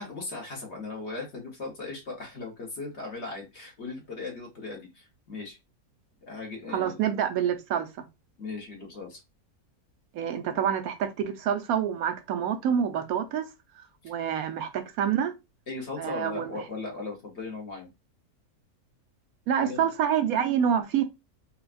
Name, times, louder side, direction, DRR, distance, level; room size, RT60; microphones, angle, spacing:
voice 1, 0.0-5.6 6.3-7.0 8.4-9.2 10.4-10.6 14.0-14.1 15.7-17.9 19.6-19.8, left 3 dB, 45° left, 1.4 m, -38 dB
voice 2, 6.7-7.9 10.1-13.5 14.0-15.3 16.0-16.6 19.5-21.0, right 8 dB, 70° right, 1.0 m, -27 dB
4.5 x 2.3 x 2.5 m
omnidirectional pair, 1.6 m